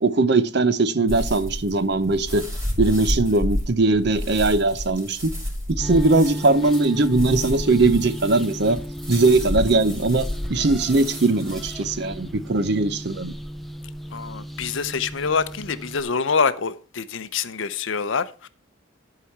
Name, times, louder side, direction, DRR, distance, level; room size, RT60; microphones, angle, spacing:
voice 1, 0.0-2.5 2.8-5.3 5.7-8.8 9.1-13.3, right 3 dB, 55° right, 0.7 m, -20 dB
sound 1, 1.1-11.7, equal, 15° right, 3.1 m, -30 dB
sound 2, 5.8-16.0, equal, ahead, 0.5 m, -35 dB
voice 2, 14.1-18.5, left 5 dB, 65° left, 0.7 m, -25 dB
11.5 x 4.9 x 5.8 m
head